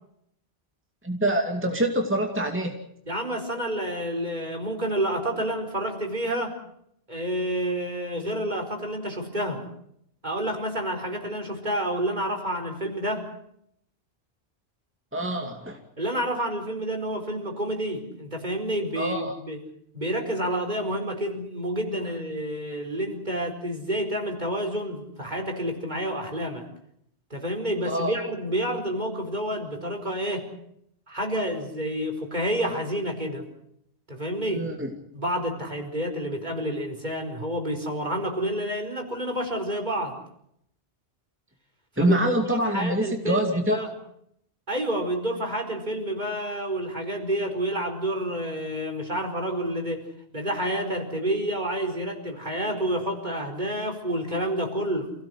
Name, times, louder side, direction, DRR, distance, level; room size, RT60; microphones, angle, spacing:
voice 1, 1.0-2.8 15.1-15.8 19.0-19.3 27.8-28.1 34.5-34.9 42.0-43.9, right 1 dB, 10° right, 2 dB, 2.5 m, -25 dB
voice 2, 3.1-6.6 7.1-9.7 10.2-13.3 16.0-19.6 19.9-26.7 27.3-30.5 31.1-33.5 34.1-34.7 35.1-40.2 42.0-43.9 44.7-50.1 50.3-55.1, right 1 dB, 45° right, 3 dB, 4.9 m, -29 dB
28.5 x 17.0 x 7.9 m, 0.74 s
omnidirectional pair, 1.1 m